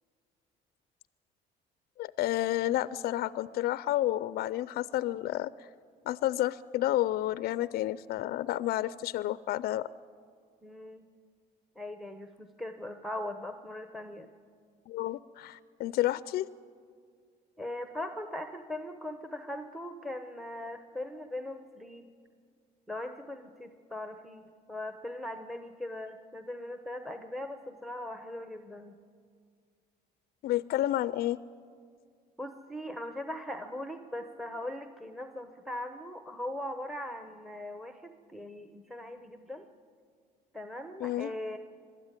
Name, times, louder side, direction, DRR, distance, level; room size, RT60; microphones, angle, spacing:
voice 1, 2.0-5.7 6.1-9.9 14.9-16.5 30.4-31.4 41.0-41.3, left 14 dB, 65° left, 17 dB, 0.5 m, -30 dB
voice 2, 10.6-11.1 11.8-14.3 17.6-22.1 22.9-29.0 32.4-39.7 40.5-41.6, left 1 dB, ahead, 7 dB, 0.9 m, -40 dB
23.0 x 12.5 x 9.8 m, 2.1 s
cardioid pair, 110°, 17 cm